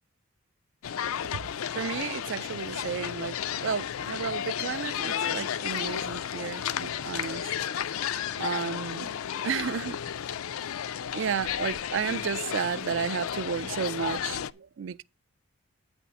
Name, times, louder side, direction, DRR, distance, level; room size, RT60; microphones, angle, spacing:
sound 1, 0.8-14.5, left 9 dB, 85° left, 0.4 m, -33 dB
voice 1, 1.7-3.4 3.6-7.7 8.4-9.1 9.4-10.0 11.1-15.0, right 7 dB, 60° right, 0.3 m, -32 dB
9.2 x 4.3 x 6.9 m
head